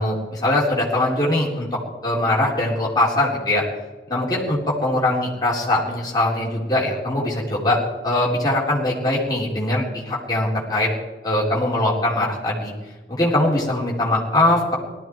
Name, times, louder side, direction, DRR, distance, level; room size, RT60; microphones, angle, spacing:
voice 1, 0.0-1.7 2.0-3.6 4.1-7.8 8.0-10.9 11.2-12.7 13.1-14.7, left 1 dB, 20° left, -4 dB, 3.7 m, -21 dB
18.5 x 13.5 x 4.7 m, 1.3 s
head